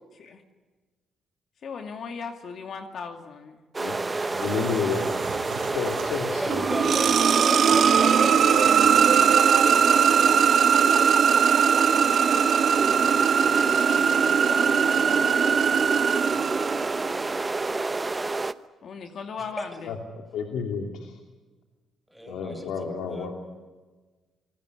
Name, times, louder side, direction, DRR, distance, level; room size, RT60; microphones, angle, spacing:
voice 1, 1.6-3.6 13.0-13.2 13.9-15.6 18.8-19.9, left 5 dB, 60° left, 5 dB, 2.4 m, -38 dB
sound 1, 3.7-18.5, right 3 dB, 20° right, 0.9 m, -29 dB
sound 2, 3.8-7.3 7.7-9.2, right 7 dB, 85° right, 5.1 m, -39 dB
voice 2, 4.3-5.0 5.7-6.9 13.7-14.0 19.9-20.0 20.3-21.2 22.3-23.3, left 6 dB, 85° left, 2 dB, 2.9 m, -31 dB
voice 3, 6.3-10.4 14.7-15.4 16.1-17.1 19.4-19.7 22.1-23.3, equal, ahead, 4 dB, 7.3 m, -38 dB
sound 3, 6.5-17.2, right 7 dB, 60° right, 1.5 m, -20 dB
28.0 x 19.5 x 9.8 m, 1.3 s
cardioid pair, 90°, 0 cm